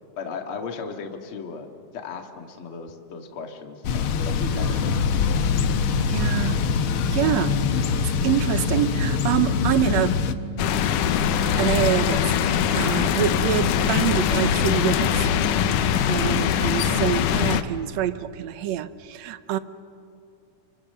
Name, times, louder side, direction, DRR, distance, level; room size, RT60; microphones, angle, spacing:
voice 1, 0.2-5.6, left 5 dB, 50° left, 4 dB, 2.5 m, -37 dB
Thunder / Bicycle, 3.8-10.3, left 6 dB, 70° left, 1.3 m, -24 dB
voice 2, 4.4-4.8 6.1-6.6 7.1-10.1 11.6-15.3 15.8-19.6, right 11 dB, 70° right, 13 dB, 1.8 m, -26 dB
sound 1, 4.7-17.1, right 12 dB, 40° right, 1.0 m, -37 dB
sound 2, 10.6-17.6, left 9 dB, 85° left, 2.5 m, -22 dB
30.0 x 24.0 x 6.8 m, 2.5 s
omnidirectional pair, 3.5 m